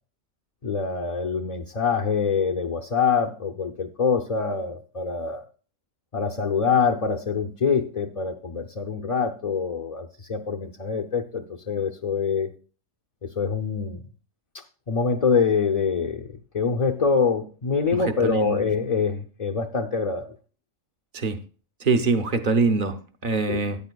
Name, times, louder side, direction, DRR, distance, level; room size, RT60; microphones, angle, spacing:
voice 1, 0.6-5.4 6.1-12.5 13.2-14.0 14.9-20.3 23.5-23.6, left 5 dB, 45° left, 0 dB, 0.5 m, -25 dB
voice 2, 18.2-18.6 21.1-21.4 21.8-23.0 23.2-23.8, right 4 dB, 45° right, 8 dB, 0.7 m, -23 dB
13.5 x 8.9 x 2.3 m, 0.37 s
omnidirectional pair, 1.4 m